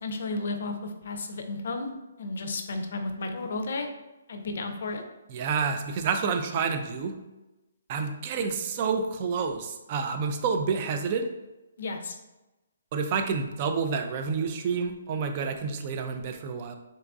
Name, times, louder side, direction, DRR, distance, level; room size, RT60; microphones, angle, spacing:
voice 1, 0.0-1.9 2.2-3.9 4.3-5.0 11.8-12.2, left 2 dB, 65° left, 5 dB, 0.4 m, -33 dB
voice 2, 5.3-7.1 7.9-11.3 12.9-16.7, right 5 dB, 35° right, 6 dB, 0.3 m, -29 dB
3.9 x 2.4 x 2.3 m, 1.0 s
hypercardioid pair, 150°, 0 cm